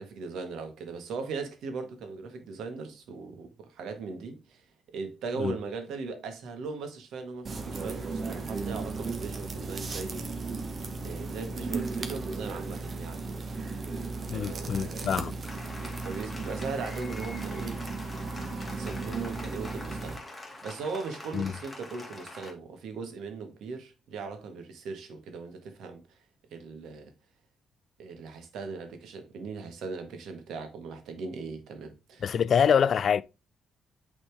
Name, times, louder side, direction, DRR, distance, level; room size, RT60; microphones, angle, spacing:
voice 1, 0.0-10.6 11.0-13.4 14.3-15.4 15.8-17.9 18.7-26.0 26.5-27.1 28.0-32.2, right 4 dB, 80° right, 1.6 m, -39 dB
sound 1, 7.4-20.2, right 3 dB, 40° right, 1.2 m, -35 dB
voice 2, 14.3-15.3 21.3-21.5 32.2-33.2, left 7 dB, 55° left, 0.4 m, -25 dB
Applause, 15.5-22.5, left 2 dB, 15° left, 2.0 m, -44 dB
8.4 x 4.2 x 3.4 m
cardioid pair, 90°, 0 cm